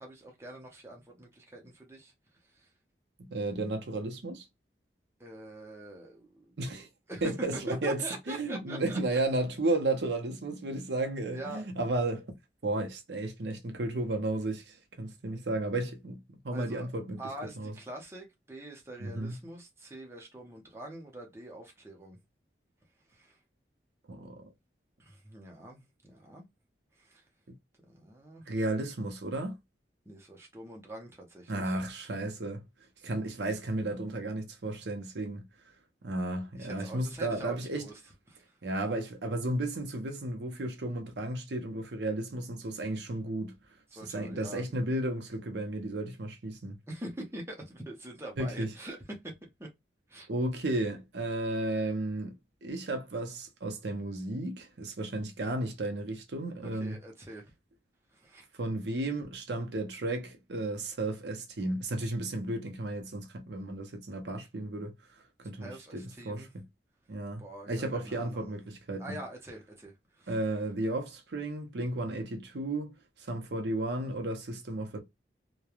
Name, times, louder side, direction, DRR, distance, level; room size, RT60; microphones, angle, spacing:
voice 1, 0.0-2.1 2.5-2.7 5.2-9.4 11.3-11.7 16.5-16.9 17.2-22.2 23.1-23.4 25.0-26.5 26.9-27.2 27.9-28.5 30.1-31.8 36.6-38.0 38.3-38.6 43.9-44.6 46.9-49.3 49.6-49.7 50.1-50.3 56.6-57.5 58.1-58.4 65.6-66.5 67.4-68.6 69.0-70.4, right 1 dB, 15° right, 0.7 m, -44 dB
voice 2, 3.2-4.5 6.6-6.9 7.2-8.0 8.3-12.3 12.6-17.2 17.6-17.7 19.0-19.4 24.1-24.5 28.5-29.6 31.5-32.6 33.0-35.4 36.0-37.9 38.6-43.6 44.0-46.8 48.4-48.7 50.3-52.4 52.6-57.0 58.6-64.9 65.4-66.6 67.1-69.2 70.3-72.9 73.2-75.0, right 2 dB, 75° right, 0.7 m, -33 dB
3.1 x 2.2 x 2.3 m
head